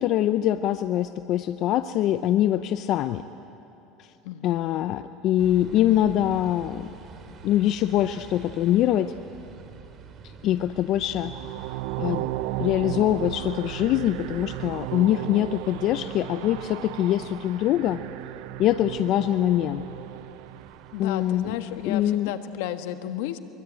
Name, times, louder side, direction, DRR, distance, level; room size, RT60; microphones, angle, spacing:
voice 1, 0.0-3.2 4.0-4.1 4.4-6.9 7.4-9.1 10.4-12.3 12.6-18.0 18.6-19.8 21.0-21.5 21.8-22.3, left 12 dB, 55° left, 11 dB, 0.7 m, -24 dB
voice 2, 4.2-4.6 20.9-23.4, left 12 dB, 80° left, 9 dB, 1.4 m, -33 dB
sound 1, 5.4-22.2, right 6 dB, 40° right, 2.4 m, -47 dB
sound 2, 11.1-21.2, right 16 dB, 75° right, 0.6 m, -35 dB
24.0 x 23.0 x 9.1 m, 2.9 s
supercardioid pair, 115°, 0 cm